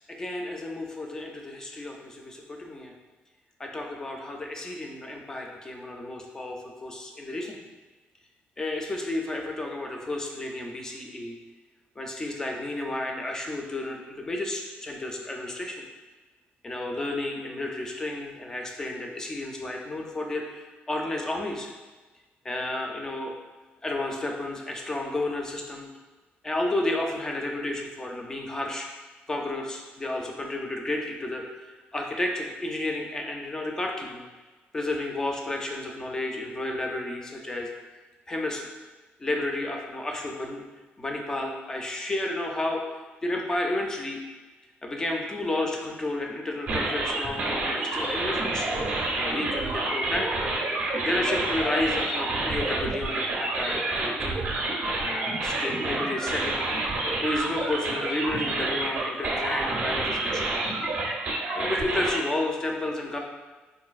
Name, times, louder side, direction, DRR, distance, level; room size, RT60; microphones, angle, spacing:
voice 1, 0.1-2.9 3.6-7.6 8.6-11.4 12.0-15.8 16.6-21.7 22.4-23.3 23.8-25.9 26.4-28.9 29.3-34.2 34.7-37.7 38.3-38.7 39.2-40.6 41.0-42.8 43.2-44.2 44.8-48.7 49.1-50.3 51.0-54.4 55.0-56.6 57.2-60.6 61.5-63.2, left 2 dB, 15° left, 1 dB, 0.3 m, -31 dB
sound 1, 46.7-62.2, right 2 dB, 45° right, 0.5 m, -28 dB
3.8 x 2.5 x 2.3 m, 1.3 s
cardioid pair, 170°, 4 cm